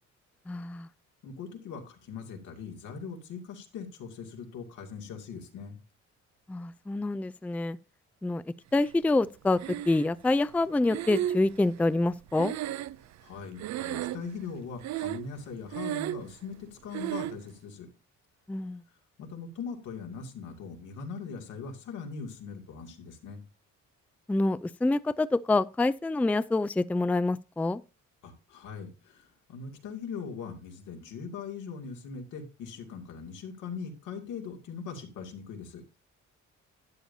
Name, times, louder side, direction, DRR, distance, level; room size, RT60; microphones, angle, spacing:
voice 1, 0.5-0.9 6.5-7.8 8.2-8.4 8.7-9.6 9.9-12.5 18.5-18.8 24.3-27.8, left 2 dB, 5° left, 0.4 m, -26 dB
voice 2, 1.2-5.8 13.2-17.9 19.2-23.4 28.2-35.8, left 5 dB, 85° left, 2.5 m, -41 dB
Breathing, 9.6-10.3 10.9-13.3 13.6-14.4 14.8-15.4 15.7-16.3 16.9-17.4, right 12 dB, 65° right, 0.5 m, -34 dB
12.5 x 8.8 x 2.7 m
cardioid pair, 90°, 30 cm